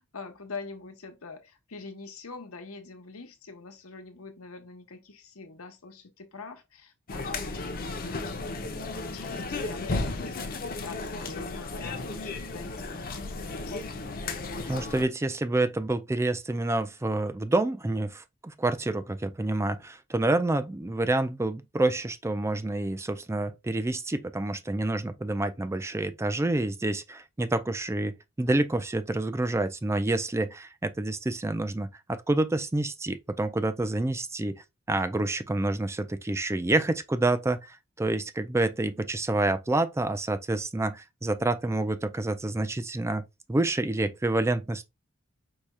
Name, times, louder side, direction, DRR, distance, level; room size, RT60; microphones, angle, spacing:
voice 1, 0.0-14.2, left 4 dB, 90° left, 1.0 m, -45 dB
sound 1, 7.1-15.0, left 3 dB, 45° left, 0.7 m, -34 dB
voice 2, 14.6-34.6 34.9-43.2 43.5-44.8, right 2 dB, 15° right, 0.4 m, -28 dB
4.8 x 2.3 x 4.2 m
head